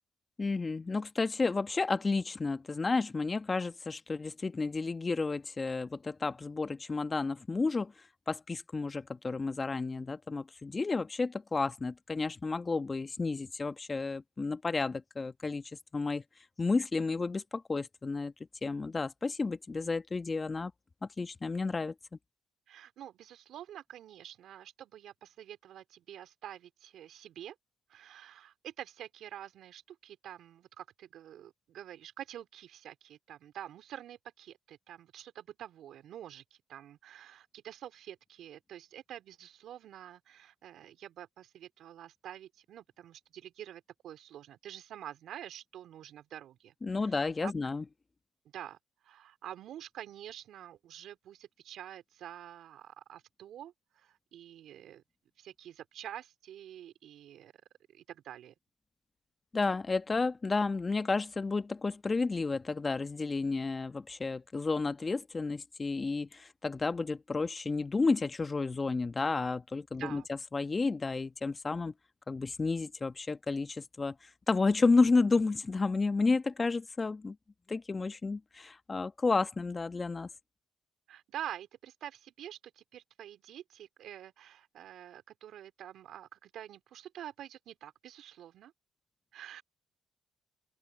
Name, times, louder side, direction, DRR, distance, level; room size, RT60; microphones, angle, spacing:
voice 1, 0.4-7.9 8.3-15.6 15.9-16.2 16.6-18.3 18.6-20.7 21.2-21.9 46.8-47.8 59.5-71.9 72.3-74.1 74.5-77.4 77.7-80.3, left 3 dB, 30° left, 1.3 m, -31 dB
voice 2, 22.7-27.5 27.9-47.5 48.5-48.8 49.0-55.0 55.4-57.5 57.9-58.5 70.0-70.3 81.1-88.7 89.3-89.6, right 11 dB, 75° right, 3.2 m, -47 dB
open air
supercardioid pair, 60°, 0 cm